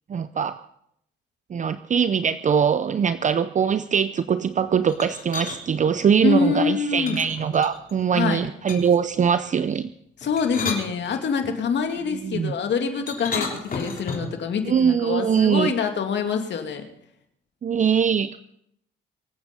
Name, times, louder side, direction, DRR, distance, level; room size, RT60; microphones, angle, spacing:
voice 1, 0.1-0.6 1.5-9.9 12.2-12.5 14.7-15.7 17.6-18.4, right 7 dB, 40° right, 12 dB, 0.6 m, -22 dB
sound 1, 4.9-5.6 7.1-8.0 8.7-9.1 10.2-11.5 13.1-14.4, left 4 dB, 45° left, 3.6 m, -32 dB
voice 2, 6.2-7.2 8.1-8.4 10.2-16.8, left 5 dB, 65° left, 5 dB, 2.5 m, -25 dB
25.0 x 8.6 x 5.3 m, 0.73 s
cardioid pair, 90°, 20 cm